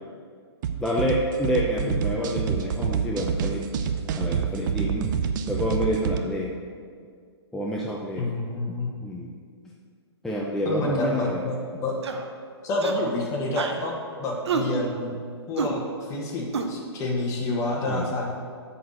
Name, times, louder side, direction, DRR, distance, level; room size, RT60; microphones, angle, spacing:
sound 1, 0.6-6.2, right 7 dB, 45° right, 0.6 m, -27 dB
voice 1, 0.8-3.6 4.1-5.1 5.5-6.5 7.5-8.3 9.0-9.3 10.2-11.4 17.9-18.1, equal, 5° left, -4 dB, 0.5 m, -28 dB
voice 2, 8.2-8.9 10.6-12.0 12.6-15.2 15.5-18.3, left 2 dB, 20° left, -1 dB, 1.5 m, -28 dB
sound 2, 12.0-12.3 12.8-13.1 13.6-13.8 14.5-14.7 15.6-15.7 16.5-16.7, right 5 dB, 75° right, 0.8 m, -28 dB
9.0 x 4.3 x 6.4 m, 2.1 s
hypercardioid pair, 140°, 14 cm